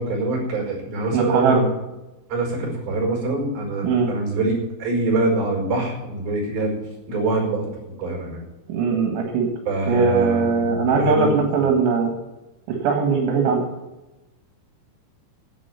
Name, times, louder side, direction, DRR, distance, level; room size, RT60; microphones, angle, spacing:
voice 1, 0.0-1.7 2.3-4.5 4.8-6.8 7.1-7.7 8.0-8.4 9.7-11.7, right 2 dB, 55° right, 0 dB, 6.3 m, -24 dB
voice 2, 1.1-1.6 3.8-4.1 8.7-9.5 9.9-12.1 12.7-13.7, right 5 dB, 80° right, 2 dB, 4.0 m, -20 dB
11.0 x 8.9 x 9.4 m, 1.0 s
omnidirectional pair, 5.3 m